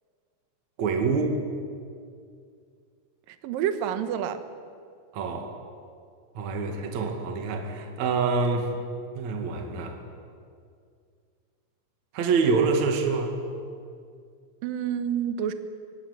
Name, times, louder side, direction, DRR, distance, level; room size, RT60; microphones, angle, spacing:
voice 1, 0.8-1.4 5.1-5.5 6.3-8.7 9.1-10.0 12.1-13.3, right 4 dB, 45° right, 4 dB, 2.9 m, -26 dB
voice 2, 3.3-4.4 14.6-15.5, right 9 dB, 65° right, 10 dB, 2.4 m, -28 dB
23.5 x 17.5 x 9.9 m, 2.2 s
omnidirectional pair, 5.2 m